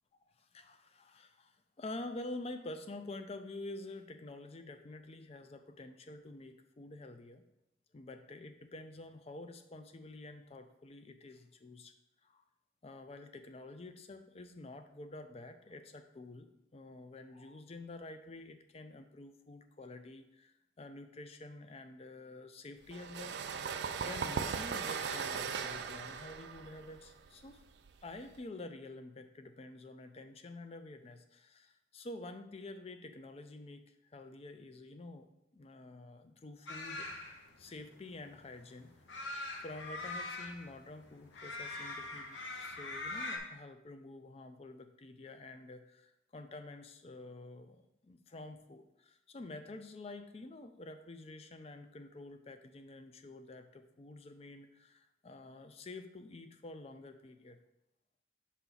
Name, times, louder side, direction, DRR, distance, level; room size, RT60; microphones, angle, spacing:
voice 1, 0.4-7.4 7.9-11.9 12.2-12.4 12.8-23.4 23.7-27.6 28.0-37.1 37.6-38.9 39.6-57.6, left 2 dB, 30° left, 8 dB, 0.4 m, -48 dB
sound 1, 22.9-28.4, right 6 dB, 60° right, 0.3 m, -38 dB
sound 2, 36.7-43.4, left 2 dB, 70° left, 0.8 m, -42 dB
5.9 x 4.2 x 3.9 m, 0.87 s
head